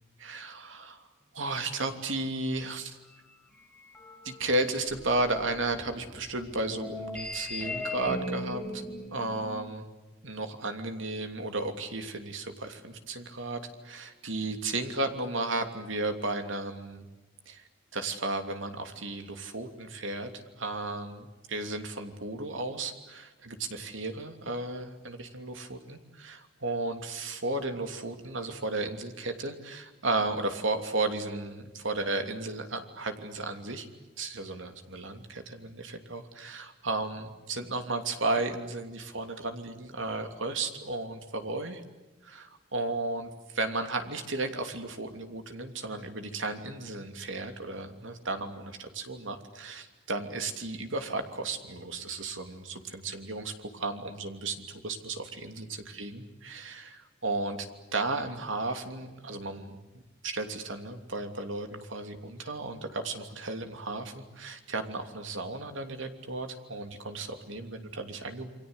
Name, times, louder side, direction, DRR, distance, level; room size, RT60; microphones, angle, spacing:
voice 1, 0.2-1.0 1.3-3.0 4.2-8.8 9.1-9.8 10.2-17.1 17.5-17.6 17.9-20.3 20.6-33.9 34.2-41.8 42.2-57.6 57.9-59.8 60.2-68.5, right 2 dB, 75° right, 6 dB, 3.0 m, -34 dB
sound 1, 3.6-9.4, left 1 dB, 5° left, 4.2 m, -39 dB
29.0 x 24.0 x 8.2 m, 1.1 s
head